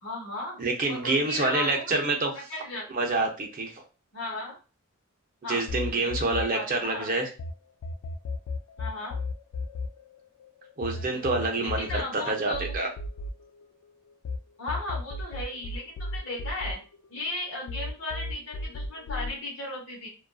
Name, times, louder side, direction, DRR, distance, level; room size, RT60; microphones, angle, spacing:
voice 1, 0.0-0.6 0.9-2.0 2.5-2.9 4.1-4.6 5.4-7.2 8.8-9.2 10.9-11.2 11.6-12.9 14.6-16.8 17.1-20.1, left 2 dB, 60° left, -4 dB, 0.9 m, -36 dB
voice 2, 0.6-2.3 2.9-3.8 5.5-7.3 10.8-12.9, right 2 dB, 40° right, 2 dB, 0.6 m, -27 dB
sound 1, 5.7-7.5 7.8-14.4 14.7-17.4 17.7-19.3, left 2 dB, 75° left, 0.3 m, -35 dB
2.5 x 2.3 x 2.2 m, 0.32 s
head